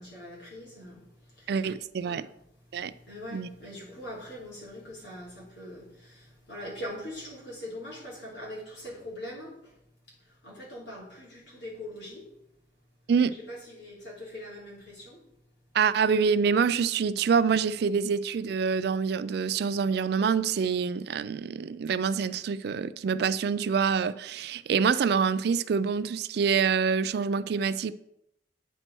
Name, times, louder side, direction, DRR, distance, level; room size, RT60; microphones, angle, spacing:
voice 1, 0.0-1.8 2.0-9.8 10.1-12.3 13.4-15.3, left 1 dB, 90° left, 3.1 m, -42 dB
voice 2, 1.5-2.2 2.7-2.9 3.3-3.5 13.1-13.3 15.7-27.9, right 6 dB, 60° right, 0.3 m, -26 dB
9.0 x 4.4 x 4.5 m
head